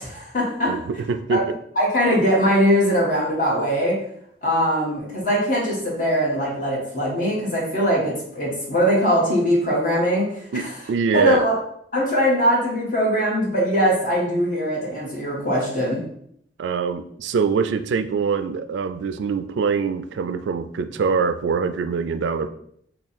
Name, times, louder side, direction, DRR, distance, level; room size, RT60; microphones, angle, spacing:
voice 1, 0.0-0.8 1.3-1.4 1.8-4.0 4.4-10.7 11.1-11.5 11.9-16.0, equal, 45° left, -4 dB, 1.3 m, -21 dB
voice 2, 0.7-1.6 10.5-11.5 16.6-22.5, right 5 dB, 80° right, 11 dB, 0.3 m, -24 dB
3.5 x 2.2 x 4.2 m, 0.69 s
head